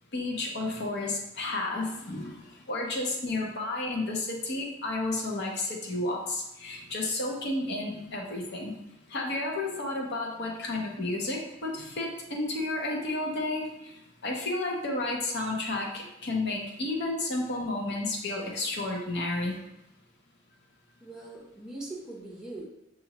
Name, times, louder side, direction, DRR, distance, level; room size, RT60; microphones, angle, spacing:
voice 1, 0.1-8.7 9.1-13.9 14.2-19.5, left 2 dB, 60° left, -1 dB, 0.8 m, -32 dB
voice 2, 21.0-22.6, right 2 dB, 5° right, -4 dB, 0.7 m, -41 dB
6.1 x 2.6 x 3.0 m, 0.87 s
head